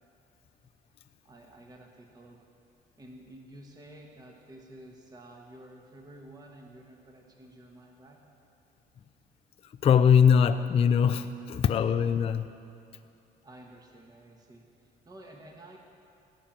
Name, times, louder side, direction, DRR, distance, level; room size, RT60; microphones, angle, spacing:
voice 1, 1.2-2.5 3.0-8.3 11.3-11.5 13.4-15.8, right 1 dB, 25° right, 1 dB, 1.4 m, -51 dB
voice 2, 9.6-12.5, left 7 dB, 35° left, 9 dB, 0.4 m, -22 dB
17.5 x 5.9 x 8.9 m, 2.6 s
cardioid pair, 110°, 17 cm